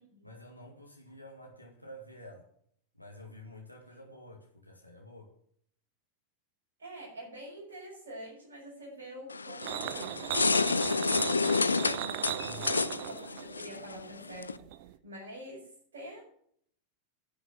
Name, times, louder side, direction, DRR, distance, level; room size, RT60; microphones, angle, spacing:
voice 1, 0.2-2.5 2.9-5.3 12.4-12.8, left 1 dB, 90° right, 1 dB, 2.1 m, -49 dB
voice 2, 6.8-10.2 10.6-12.2 12.5-14.7 15.0-16.2, right 1 dB, 65° right, -6 dB, 5.5 m, -46 dB
sound 1, 9.3-14.6, left 4 dB, 75° left, 0.4 m, -30 dB
sound 2, 9.6-15.0, right 13 dB, 50° right, 0.7 m, -38 dB
10.5 x 6.5 x 9.1 m, 0.66 s
figure-of-eight pair, 90°, 0 cm